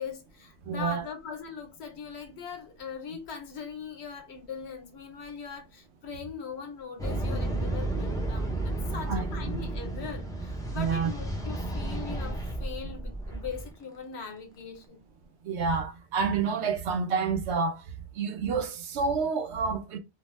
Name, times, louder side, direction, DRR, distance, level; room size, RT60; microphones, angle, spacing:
voice 1, 0.0-15.0, left 6 dB, 75° left, 1.0 m, -40 dB
voice 2, 0.7-1.1 9.1-9.3 10.7-11.1 15.4-20.0, right 5 dB, 80° right, 0.9 m, -29 dB
sound 1, 7.0-13.7, right 2 dB, 5° left, 0.3 m, -32 dB
2.6 x 2.0 x 3.1 m
omnidirectional pair, 1.1 m